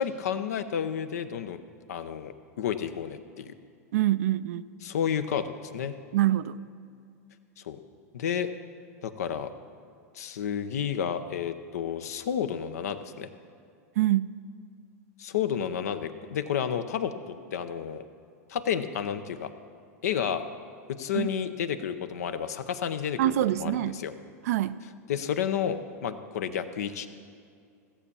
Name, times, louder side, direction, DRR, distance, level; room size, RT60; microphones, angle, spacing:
voice 1, 0.0-1.6 1.9-3.5 4.8-5.9 7.6-7.8 8.1-8.5 9.0-9.5 10.1-13.3 15.2-18.0 18.5-19.5 20.0-20.4 20.9-24.1 25.1-27.1, left 8 dB, 75° left, 10 dB, 0.8 m, -31 dB
voice 2, 3.9-4.6 6.1-6.6 14.0-14.3 21.1-21.3 23.2-24.0 24.4-24.8, right 14 dB, 65° right, 14 dB, 0.4 m, -25 dB
15.0 x 7.2 x 6.9 m, 2.3 s
hypercardioid pair, 100°, 9 cm